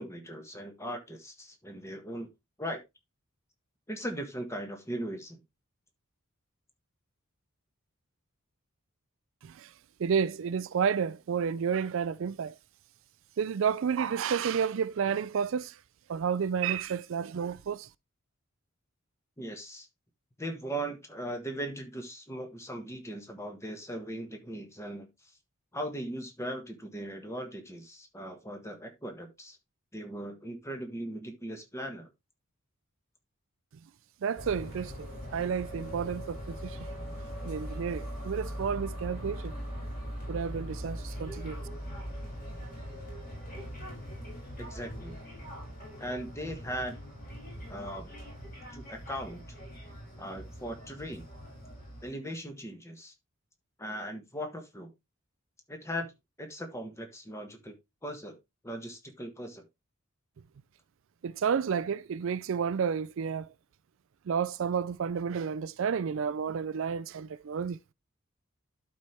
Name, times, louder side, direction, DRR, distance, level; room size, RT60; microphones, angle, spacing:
voice 1, 0.0-2.3 2.6-2.8 3.9-5.4 19.4-19.9 20.4-25.3 25.7-29.6 29.9-32.1 44.6-45.2 46.0-46.9 47.7-48.2 48.7-49.4 50.2-51.2 52.0-53.1 53.8-54.9 55.7-56.1 56.4-57.7 58.0-58.4 58.6-59.6, equal, 15° left, 1.5 m, -39 dB
voice 2, 10.0-12.6 13.4-15.8 16.1-17.9 34.2-36.8 37.4-39.5 40.3-41.6 61.2-63.5 64.3-67.8, right 7 dB, 60° right, 0.4 m, -31 dB
sound 1, 34.4-52.1, equal, 40° left, 6.1 m, -41 dB
11.5 x 4.5 x 3.3 m
head